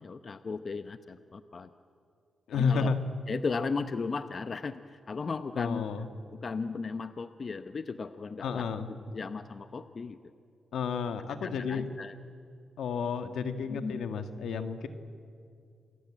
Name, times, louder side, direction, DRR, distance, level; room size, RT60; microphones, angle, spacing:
voice 1, 0.0-1.7 2.5-3.0 3.3-5.9 6.3-10.2 11.4-12.1 13.7-14.1, left 4 dB, 50° left, 10 dB, 0.9 m, -36 dB
voice 2, 2.5-3.0 5.6-6.1 8.4-8.9 10.7-11.8 12.8-14.9, left 5 dB, 80° left, 8 dB, 1.7 m, -31 dB
28.0 x 20.5 x 8.9 m, 2.4 s
cardioid pair, 70°, 0 cm